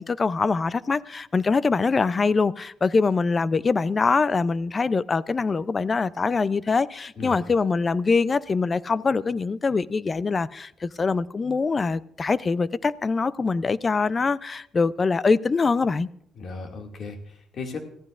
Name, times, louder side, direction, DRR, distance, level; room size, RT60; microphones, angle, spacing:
voice 1, 0.0-16.1, left 4 dB, 35° left, 0.5 m, -23 dB
voice 2, 7.2-7.5 16.4-17.8, left 4 dB, 60° left, 2.2 m, -36 dB
26.0 x 15.0 x 2.5 m
cardioid pair, 90°, 0 cm